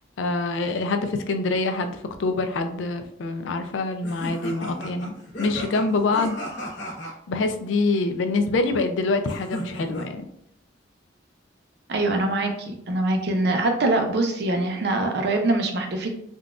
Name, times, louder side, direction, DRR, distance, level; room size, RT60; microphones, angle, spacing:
voice 1, 0.2-6.4 7.3-10.3, left 3 dB, 85° left, 7 dB, 0.4 m, -25 dB
sound 1, 4.0-7.1 9.3-10.0, equal, 70° left, 1.1 m, -35 dB
voice 2, 11.9-16.1, right 2 dB, 60° right, 4 dB, 0.5 m, -23 dB
3.7 x 2.3 x 2.4 m, 0.73 s
head